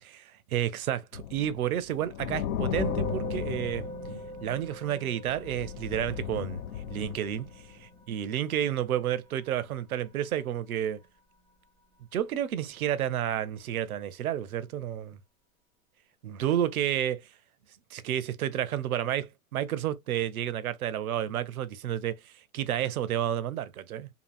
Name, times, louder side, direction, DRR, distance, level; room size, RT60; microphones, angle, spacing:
voice 1, 0.5-6.6 6.9-7.5 7.8-11.0 12.1-15.2 16.2-17.2 17.9-24.1, right 11 dB, 90° right, 0.6 m, -31 dB
sound 1, 1.1-4.8 5.3-7.8, left 9 dB, 75° left, 0.5 m, -35 dB
Musical instrument, 2.8-12.3, right 3 dB, 5° right, 0.5 m, -44 dB
2.7 x 2.7 x 2.4 m
hypercardioid pair, 120°, 42 cm